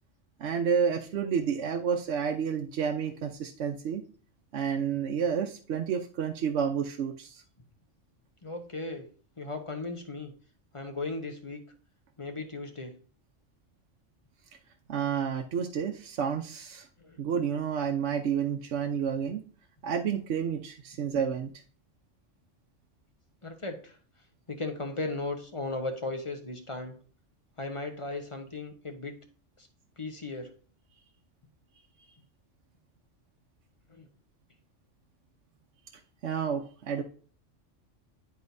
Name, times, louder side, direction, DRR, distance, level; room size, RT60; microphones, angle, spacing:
voice 1, 0.4-4.0 4.5-7.4 14.9-16.9 17.2-19.4 19.8-21.5 36.2-37.0, right 7 dB, 70° right, 3 dB, 1.0 m, -30 dB
voice 2, 8.4-9.1 9.4-10.3 10.7-11.6 12.2-12.9 17.0-17.2 23.4-23.9 24.5-26.9 27.6-29.2 30.0-30.5 33.9-34.1, left 2 dB, 30° left, 5 dB, 0.9 m, -36 dB
10.5 x 4.3 x 2.6 m, 0.43 s
omnidirectional pair, 1.3 m